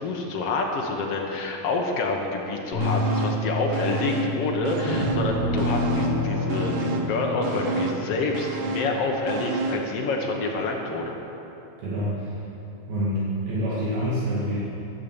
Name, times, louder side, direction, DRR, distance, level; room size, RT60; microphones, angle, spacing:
voice 1, 0.0-11.1, left 3 dB, 75° left, 1 dB, 1.3 m, -27 dB
sound 1, 2.7-9.0, equal, 45° left, 4.2 m, -33 dB
sound 2, 2.8-3.5 3.7-5.3 5.6-9.9 10.3-10.4, right 3 dB, 90° right, 3.2 m, -31 dB
sound 3, 4.9-9.3, left 1 dB, 35° right, 3.7 m, -29 dB
voice 2, 11.8-12.4 12.9-14.6, equal, 70° right, -9 dB, 4.2 m, -27 dB
15.0 x 10.5 x 7.1 m, 3.0 s
omnidirectional pair, 4.5 m